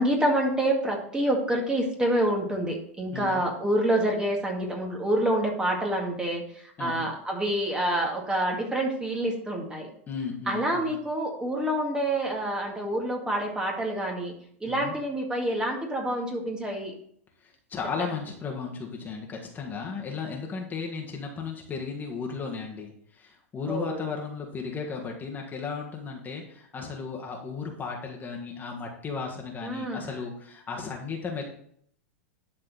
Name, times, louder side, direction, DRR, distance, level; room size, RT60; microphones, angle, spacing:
voice 1, 0.0-9.9 10.5-14.3 14.6-16.9 23.7-24.0 29.6-30.1, right 1 dB, 10° right, 0 dB, 2.0 m, -27 dB
voice 2, 6.8-7.1 10.1-10.9 14.6-14.9 17.4-31.4, left 5 dB, 25° left, 0 dB, 1.7 m, -35 dB
11.5 x 4.4 x 4.2 m, 0.65 s
hypercardioid pair, 110°, 8 cm